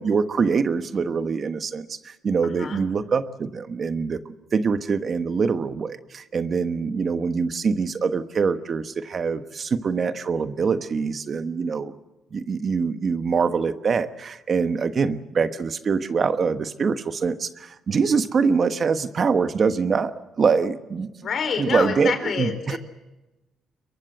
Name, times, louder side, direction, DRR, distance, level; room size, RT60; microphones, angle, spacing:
voice 1, 0.0-4.2 4.5-11.9 12.3-21.1 21.6-22.8, right 5 dB, 45° right, 11 dB, 1.2 m, -24 dB
voice 2, 2.4-2.8 21.2-22.8, left 6 dB, 55° left, 9 dB, 4.0 m, -27 dB
23.0 x 22.0 x 7.9 m, 1.0 s
cardioid pair, 90°, 0 cm